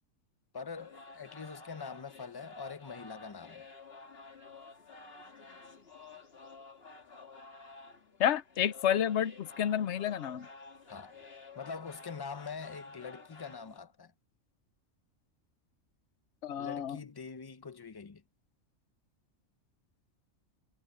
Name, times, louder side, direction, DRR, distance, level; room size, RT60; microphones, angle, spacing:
voice 1, 0.5-3.7 10.9-11.1 11.6-14.1 16.6-18.2, left 5 dB, 25° left, 0.5 m, -44 dB
sound 1, 0.8-13.8, left 3 dB, 50° left, 2.1 m, -52 dB
voice 2, 8.2-10.5 16.4-17.0, left 9 dB, 65° left, 1.0 m, -30 dB
omnidirectional pair, 1.4 m